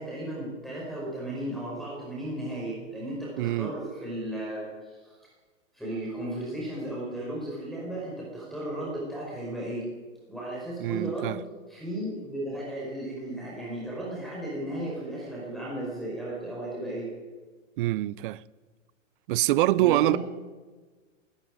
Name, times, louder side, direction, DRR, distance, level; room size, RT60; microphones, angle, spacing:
voice 1, 0.0-5.2 5.7-9.8 10.3-11.4 11.7-17.1 19.8-20.2, right 1 dB, ahead, 5.2 m, -35 dB
voice 2, 3.4-3.7 10.8-11.4 17.8-18.4 19.3-20.2, right 16 dB, 45° right, 0.5 m, -24 dB
19.5 x 14.0 x 5.1 m
hypercardioid pair, 130°, 38 cm